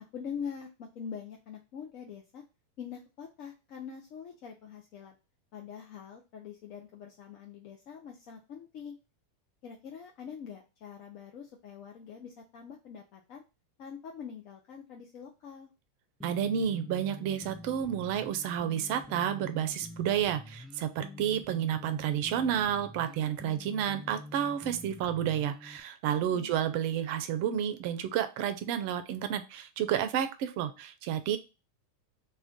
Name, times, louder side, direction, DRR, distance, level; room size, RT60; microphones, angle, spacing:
voice 1, 0.0-2.4 2.8-5.2 5.5-9.0 9.6-13.4 13.8-15.7 26.3-26.6, left 7 dB, 55° left, 1 dB, 0.5 m, -44 dB
sound 1, 16.2-25.8, left 1 dB, ahead, 0.5 m, -47 dB
voice 2, 16.2-31.4, right 9 dB, 55° right, 10 dB, 0.4 m, -31 dB
2.5 x 2.2 x 3.5 m, 0.28 s
hypercardioid pair, 105°, 0 cm